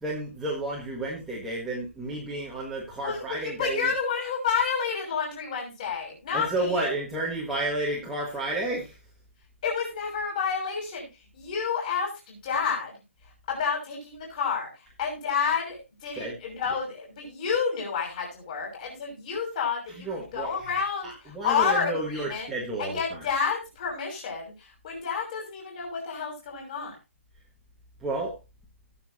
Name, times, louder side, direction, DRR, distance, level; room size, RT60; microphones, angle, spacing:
voice 1, 0.0-3.9 6.3-8.9 16.2-16.3 20.0-20.8 21.0-23.0 28.0-28.3, right 2 dB, 5° right, -6 dB, 1.5 m, -31 dB
voice 2, 3.0-6.9 9.6-11.1 11.3-13.0 13.5-14.7 15.0-22.5 22.8-26.9, left 6 dB, 30° left, 0 dB, 6.3 m, -30 dB
18.5 x 7.1 x 2.7 m, 0.26 s
hypercardioid pair, 175°, 8 cm